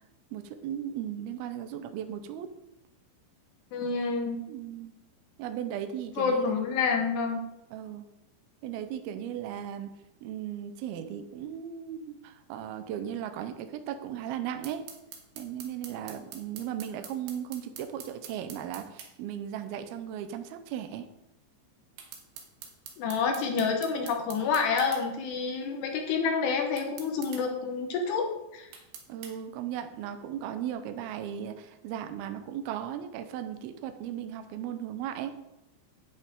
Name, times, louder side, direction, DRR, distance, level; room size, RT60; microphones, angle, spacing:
voice 1, 0.3-2.5 4.5-4.9 5.4-6.6 7.7-8.1 8.6-9.9 10.2-14.8 15.4-21.1 29.1-35.4, right 10 dB, 90° right, 8 dB, 2.1 m, -36 dB
voice 2, 3.7-4.4 6.2-7.4 23.0-28.3 28.5-28.7, left 5 dB, 70° left, 3 dB, 3.0 m, -28 dB
sound 1, 14.6-19.1 22.0-25.0 26.8-27.4 28.7-29.3, right 7 dB, 70° right, 2.9 m, -45 dB
11.0 x 9.3 x 3.7 m, 0.90 s
omnidirectional pair, 5.5 m